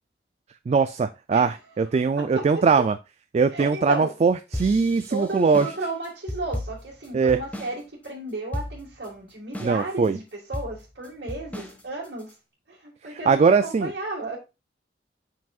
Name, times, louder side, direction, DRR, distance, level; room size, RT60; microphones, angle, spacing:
voice 1, 0.7-2.9 3.3-5.7 7.1-7.4 9.6-10.2 13.1-13.9, right 5 dB, 40° right, 0.3 m, -21 dB
voice 2, 2.2-2.6 3.5-4.1 5.1-12.3 12.7-14.4, right 2 dB, 65° right, 1.9 m, -33 dB
sound 1, 4.5-7.8 8.0-8.1 8.5-9.1 9.5-10.1 10.5-12.3, left 1 dB, 10° left, 1.2 m, -35 dB
7.5 x 5.8 x 2.4 m
head